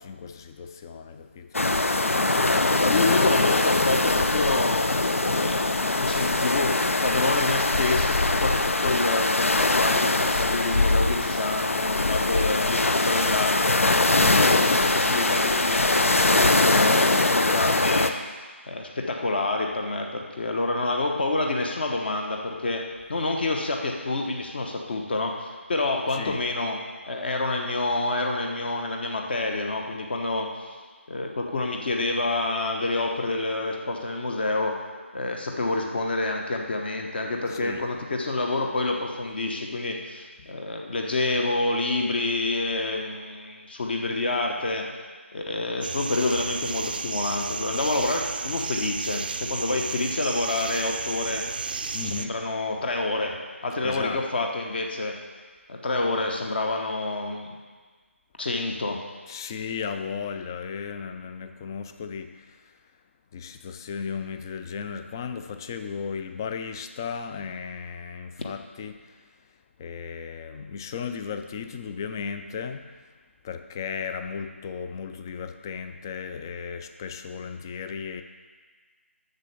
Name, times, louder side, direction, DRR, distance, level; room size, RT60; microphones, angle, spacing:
voice 1, 0.0-1.7 2.9-3.2 14.1-14.6 26.1-26.4 37.5-37.8 51.9-52.4 53.8-54.2 59.3-62.8 63.3-69.3 69.8-73.1 73.4-78.2, left 6 dB, 15° left, 8 dB, 0.3 m, -35 dB
sound 1, 1.5-18.1, left 2 dB, 80° left, 0.7 m, -22 dB
voice 2, 2.4-6.8 7.0-13.8 14.4-18.1 18.7-26.8 27.1-30.7 31.1-34.8 35.1-44.9 45.3-51.4 52.2-53.4 53.6-55.1 55.7-57.5 58.4-59.0, left 2 dB, 45° left, 2 dB, 1.1 m, -28 dB
sound 2, 45.8-52.3, right 4 dB, 45° right, 0.5 m, -32 dB
7.9 x 6.6 x 6.8 m, 1.5 s
figure-of-eight pair, 160°, 7 cm